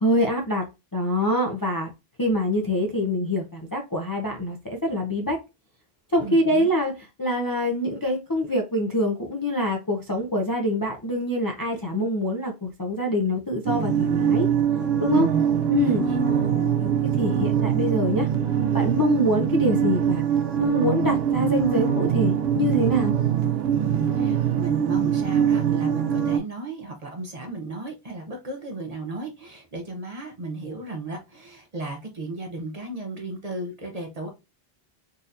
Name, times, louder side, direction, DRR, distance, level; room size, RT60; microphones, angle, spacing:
voice 1, 0.0-0.7 0.9-1.9 2.2-5.4 6.1-6.9 7.2-14.5 15.0-15.3 15.7-16.0 16.8-16.9 17.2-18.3 18.7-20.2 20.6-23.1, left 1 dB, 30° left, 0.4 m, -25 dB
voice 2, 6.2-6.7 15.1-16.5 23.8-34.3, right 2 dB, 40° right, 0.7 m, -35 dB
sound 1, 13.7-26.4, right 8 dB, 70° right, 0.8 m, -23 dB
3.9 x 2.7 x 2.4 m
omnidirectional pair, 1.1 m